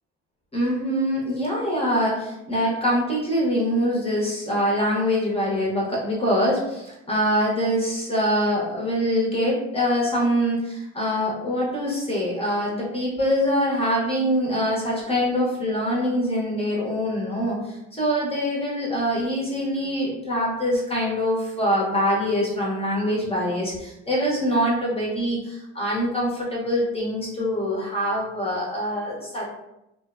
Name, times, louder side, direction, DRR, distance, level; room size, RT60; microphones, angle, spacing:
voice 1, 0.5-29.5, equal, 20° left, -4 dB, 0.7 m, -24 dB
2.4 x 2.1 x 2.4 m, 0.90 s
supercardioid pair, 90°, 29 cm